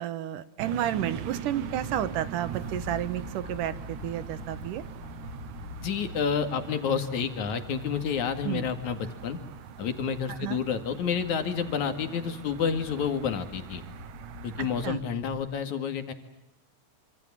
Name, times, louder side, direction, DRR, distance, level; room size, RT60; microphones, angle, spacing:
voice 1, 0.0-4.8 8.4-8.6 10.4-10.6 14.6-15.0, right 11 dB, 85° right, 14 dB, 2.8 m, -31 dB
sound 1, 0.6-14.9, right 10 dB, 70° right, 2.6 m, -42 dB
sound 2, 0.9-15.4, left 4 dB, 85° left, 3.8 m, -46 dB
voice 2, 5.8-9.4 9.8-13.8 14.4-16.1, left 7 dB, 70° left, 8 dB, 3.4 m, -29 dB
27.0 x 26.0 x 7.6 m, 0.90 s
omnidirectional pair, 3.6 m